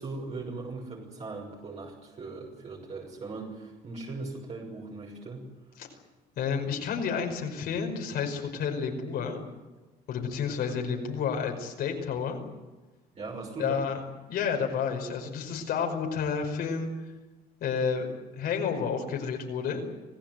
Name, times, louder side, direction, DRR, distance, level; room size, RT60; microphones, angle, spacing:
voice 1, 0.0-5.5 10.7-11.0 13.1-13.8, right 3 dB, 40° right, -2 dB, 6.3 m, -39 dB
voice 2, 6.4-9.4 10.1-12.4 13.6-14.0 14.3-16.9 17.6-18.1 18.4-19.8, left 6 dB, 70° left, 2 dB, 5.4 m, -30 dB
26.0 x 16.5 x 9.3 m, 1.2 s
cardioid pair, 110°, 17 cm